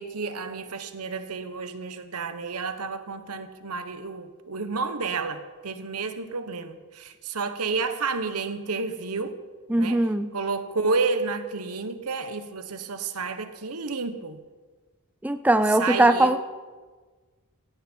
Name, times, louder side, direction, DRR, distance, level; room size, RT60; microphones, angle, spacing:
voice 1, 0.0-9.4 9.8-10.0 10.3-14.4 15.8-16.3, right 4 dB, 90° right, 10 dB, 1.2 m, -30 dB
voice 2, 9.7-10.3 15.2-16.4, right 1 dB, 5° right, 11 dB, 0.4 m, -20 dB
17.0 x 15.0 x 4.6 m, 1.4 s
head